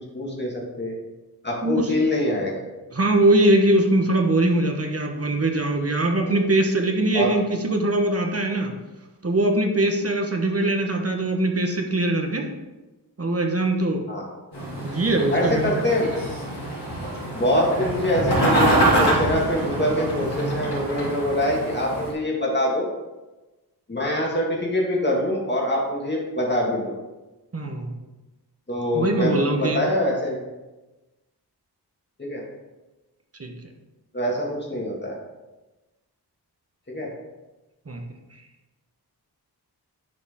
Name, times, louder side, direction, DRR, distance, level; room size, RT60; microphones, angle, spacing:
voice 1, 0.1-1.0 1.4-2.6 6.2-6.3 7.1-7.3 14.1-14.3 15.3-16.1 17.3-22.9 23.9-26.9 28.7-30.4 32.2-32.4 34.1-35.2 36.9-37.1, left 1 dB, 25° left, -3 dB, 2.0 m, -24 dB
voice 2, 1.6-1.9 2.9-8.7 9.2-12.5 13.2-14.0 14.8-15.7 27.5-27.9 28.9-29.8 33.4-33.5 37.9-38.0, right 1 dB, 35° right, 3 dB, 1.2 m, -22 dB
sound 1, 14.5-22.1, right 1 dB, 80° left, 2.6 m, -25 dB
11.0 x 4.9 x 3.7 m, 1.1 s
wide cardioid pair, 95°, 40 cm